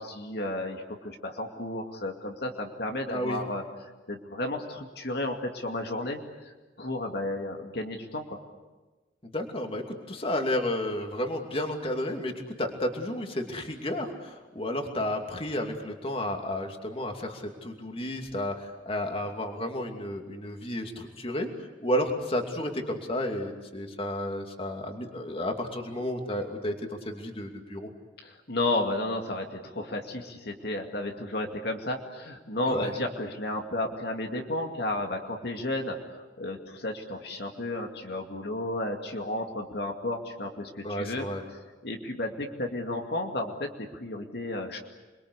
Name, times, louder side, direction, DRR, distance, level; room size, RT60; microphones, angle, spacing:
voice 1, 0.0-6.5 6.8-8.4 28.2-41.3 41.8-44.8, left 1 dB, 60° left, 2 dB, 2.4 m, -33 dB
voice 2, 9.2-21.5 21.8-27.9 32.6-32.9 40.8-41.4, left 1 dB, 30° left, 4 dB, 2.6 m, -32 dB
28.5 x 22.5 x 8.2 m, 1.2 s
head